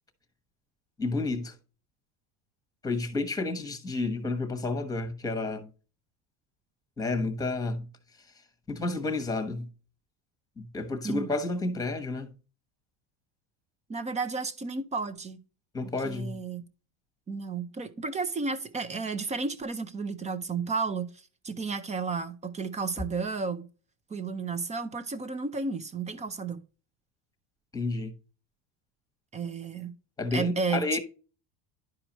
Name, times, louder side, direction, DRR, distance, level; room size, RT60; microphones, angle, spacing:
voice 1, 1.0-1.5 2.8-5.7 7.0-7.9 8.7-9.7 10.6-12.3 15.7-16.4 27.7-28.1 30.2-31.0, left 3 dB, 10° left, 1.1 m, -30 dB
voice 2, 13.9-15.4 15.8-16.6 17.3-21.1 21.4-23.7 24.1-26.6 29.3-29.9 30.3-31.0, right 4 dB, 15° right, 0.5 m, -32 dB
11.0 x 4.8 x 2.9 m
supercardioid pair, 135°, 47 cm